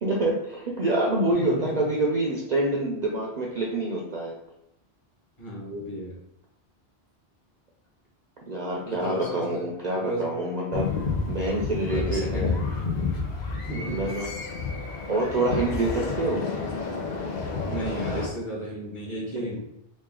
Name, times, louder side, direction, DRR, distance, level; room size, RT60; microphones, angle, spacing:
voice 1, 0.0-4.4 8.5-10.9 11.3-12.6 13.8-14.3 15.1-16.5, right 2 dB, 50° right, -2 dB, 0.6 m, -26 dB
voice 2, 1.3-1.8 5.4-6.2 8.8-9.7 10.0-10.3 11.9-12.6 13.6-14.1 17.7-19.6, right 1 dB, 30° left, -5 dB, 1.2 m, -34 dB
sound 1, 10.7-18.3, left 4 dB, 50° left, 0.6 m, -30 dB
3.1 x 2.5 x 3.7 m, 0.82 s
omnidirectional pair, 1.1 m